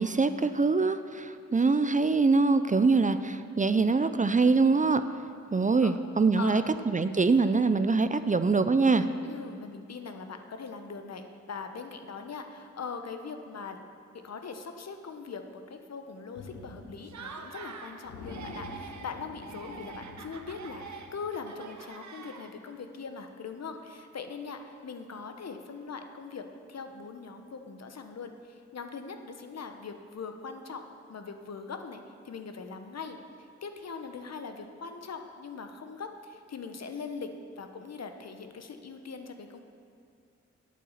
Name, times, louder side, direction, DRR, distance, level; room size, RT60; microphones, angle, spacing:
voice 1, 0.0-5.0 5.5-9.1, right 4 dB, 25° right, 11 dB, 0.5 m, -24 dB
voice 2, 6.4-6.8 9.2-13.9 14.2-30.8 31.1-37.3 37.6-39.6, left 5 dB, 60° left, 7 dB, 1.0 m, -41 dB
sound 1, 16.3-17.3 17.6-17.7 18.0-21.4, left 3 dB, 90° left, 0.9 m, -46 dB
Laughter, 17.0-18.0 18.2-19.1 19.4-22.8, right 5 dB, 75° right, 0.9 m, -45 dB
8.4 x 8.4 x 7.2 m, 2.3 s
cardioid pair, 45°, 29 cm